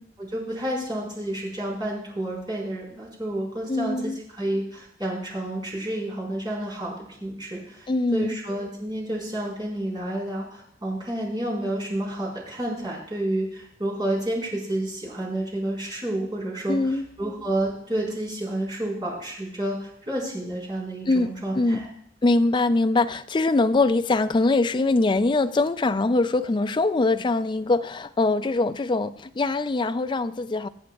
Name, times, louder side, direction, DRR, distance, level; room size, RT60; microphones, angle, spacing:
voice 1, 0.2-6.9 7.2-21.9, right 1 dB, 25° right, -5 dB, 4.6 m, -30 dB
voice 2, 3.7-4.2 7.9-8.4 16.7-17.1 21.1-21.3 21.5-21.8 22.2-30.7, left 2 dB, 25° left, 10 dB, 0.4 m, -23 dB
23.5 x 8.0 x 2.4 m, 0.72 s
head